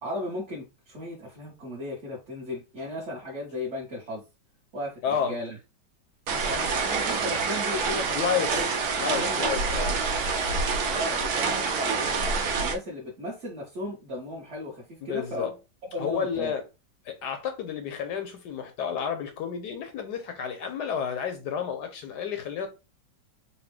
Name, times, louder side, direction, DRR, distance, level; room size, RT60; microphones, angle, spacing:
voice 1, 0.0-4.2 4.7-5.6 6.3-8.7 9.0-9.9 10.8-12.1 12.6-15.5 15.9-16.5, left 1 dB, 45° right, 1.2 m, -36 dB
voice 2, 5.0-5.4 8.1-8.6 9.0-10.0 15.0-15.5 16.0-16.6 17.0-22.7, left 7 dB, 70° left, 1.1 m, -31 dB
sound 1, 6.3-12.7, right 4 dB, 65° right, 1.1 m, -27 dB
4.1 x 2.2 x 3.3 m
omnidirectional pair, 2.1 m